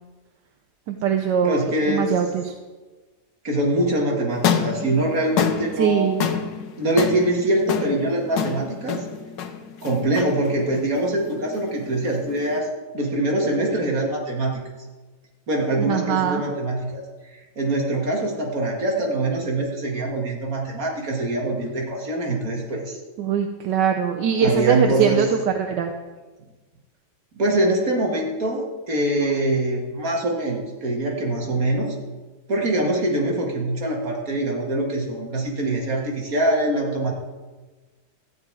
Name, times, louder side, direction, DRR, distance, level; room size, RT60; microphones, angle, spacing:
voice 1, 0.9-2.5 5.8-6.3 15.9-16.4 23.2-25.9, right 7 dB, 80° right, 5 dB, 1.4 m, -22 dB
voice 2, 1.4-2.1 3.4-6.1 6.8-9.0 9.8-12.7 12.9-14.6 15.5-17.0 17.3-23.0 24.4-25.2 27.3-32.0 32.5-37.1, right 1 dB, 50° right, -1 dB, 2.3 m, -24 dB
sound 1, 4.3-12.6, left 7 dB, 90° left, 1.5 m, -28 dB
14.0 x 9.7 x 4.8 m, 1.3 s
omnidirectional pair, 1.9 m